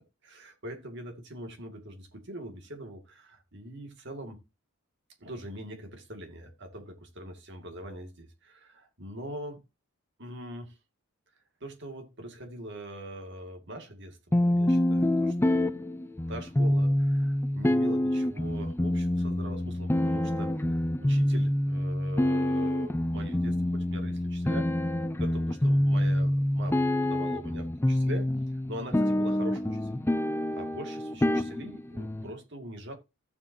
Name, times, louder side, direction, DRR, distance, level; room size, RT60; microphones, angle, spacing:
voice 1, 0.2-4.4 5.2-9.6 10.2-10.7 11.6-15.8 16.3-20.5 20.8-24.7 25.2-28.3 28.7-29.9 30.6-33.0, equal, 55° right, 2.3 m, -42 dB
sound 1, 14.3-32.3, left 1 dB, 10° left, 0.5 m, -27 dB
15.0 x 7.1 x 2.8 m
head